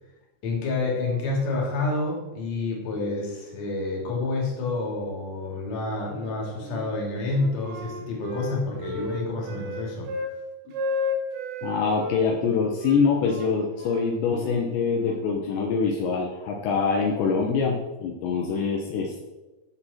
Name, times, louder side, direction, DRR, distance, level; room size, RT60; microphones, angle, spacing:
voice 1, 0.4-10.1, left 3 dB, 45° left, -1 dB, 3.3 m, -28 dB
Wind instrument woodwind instrument, 6.1-6.9 7.3-10.4 10.7-12.2 12.8-15.3, left 2 dB, 75° right, 3.7 m, -33 dB
voice 2, 11.6-19.2, left 5 dB, 75° left, 0 dB, 3.1 m, -24 dB
14.0 x 6.9 x 4.3 m, 1.1 s
omnidirectional pair, 5.4 m